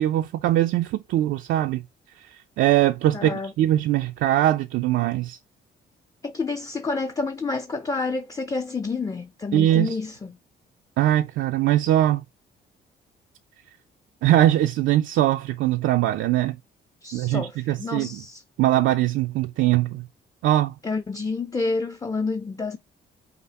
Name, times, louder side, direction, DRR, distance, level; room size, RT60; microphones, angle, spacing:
voice 1, 0.0-1.8 2.2-5.4 9.5-10.0 11.0-12.2 14.2-16.6 17.1-18.2 18.6-20.1 20.4-20.8, right 13 dB, 75° right, 0.4 m, -21 dB
voice 2, 3.1-3.5 6.2-10.3 17.0-18.4 20.8-22.8, left 3 dB, 20° left, 0.5 m, -29 dB
5.8 x 2.0 x 4.0 m
cardioid pair, 90°, 20 cm